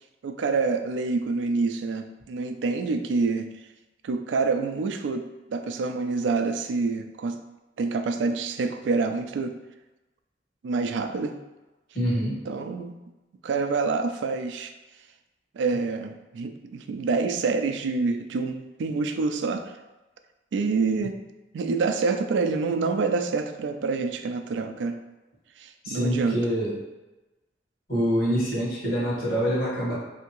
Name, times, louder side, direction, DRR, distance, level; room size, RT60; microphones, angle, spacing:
voice 1, 0.2-3.5 4.0-7.4 7.8-9.6 10.6-11.4 12.5-13.0 13.4-14.7 15.5-19.7 20.5-21.2 21.5-25.0 25.6-26.4, right 4 dB, 85° right, 8 dB, 0.3 m, -27 dB
voice 2, 11.9-12.4 25.8-26.7 27.9-29.9, equal, 55° left, -6 dB, 1.3 m, -25 dB
3.4 x 2.8 x 2.9 m, 1.1 s
head